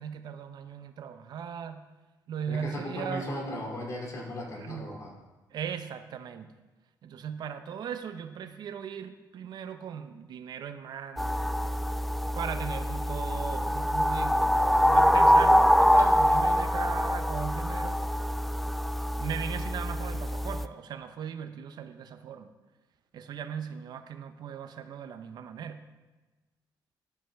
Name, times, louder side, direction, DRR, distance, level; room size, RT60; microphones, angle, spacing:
voice 1, 0.0-1.8 2.3-3.3 4.6-4.9 5.5-6.5 7.0-11.6 12.3-18.0 19.1-22.5 23.1-25.8, right 7 dB, 65° right, 9 dB, 0.6 m, -38 dB
voice 2, 2.5-5.1, left 1 dB, 45° left, 0 dB, 2.6 m, -36 dB
sound 1, 11.2-20.6, equal, ahead, 0.3 m, -24 dB
11.5 x 8.4 x 3.4 m, 1.2 s
cardioid pair, 95°, 8 cm